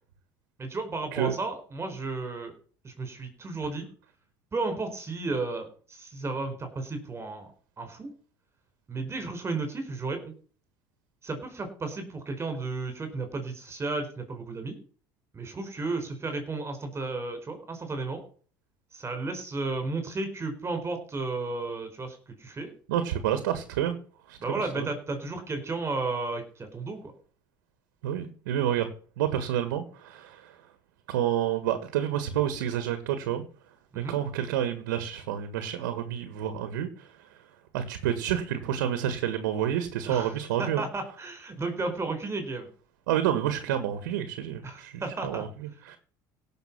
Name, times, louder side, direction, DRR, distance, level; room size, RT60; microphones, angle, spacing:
voice 1, 0.6-2.5 2.8-3.9 4.5-7.5 7.8-8.1 8.9-10.3 11.2-14.8 15.3-18.2 18.9-22.7 24.4-27.0 33.9-34.2 40.1-42.7 44.6-45.4, right 3 dB, 25° right, 7 dB, 4.5 m, -33 dB
voice 2, 22.9-24.0 24.3-24.4 24.8-24.9 28.0-28.9 29.2-30.5 31.1-33.4 34.0-37.1 37.7-40.8 43.1-44.9 45.2-45.5 45.9-46.0, right 10 dB, 90° right, 10 dB, 1.7 m, -29 dB
17.0 x 6.6 x 6.1 m, 0.43 s
supercardioid pair, 85°, 10 cm